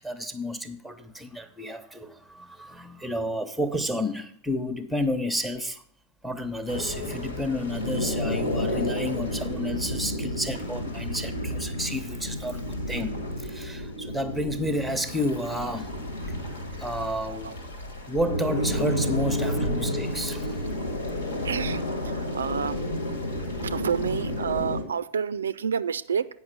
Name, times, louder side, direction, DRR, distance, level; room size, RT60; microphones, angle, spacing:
voice 1, 0.0-5.8 6.2-15.9 16.8-17.6 18.1-20.7, equal, ahead, 0.9 m, -31 dB
sound 1, 6.7-24.8, left 1 dB, 65° left, 1.8 m, -31 dB
voice 2, 21.4-22.8 23.6-26.3, right 7 dB, 70° right, 0.3 m, -29 dB
9.0 x 5.5 x 6.6 m
figure-of-eight pair, 90°, 0 cm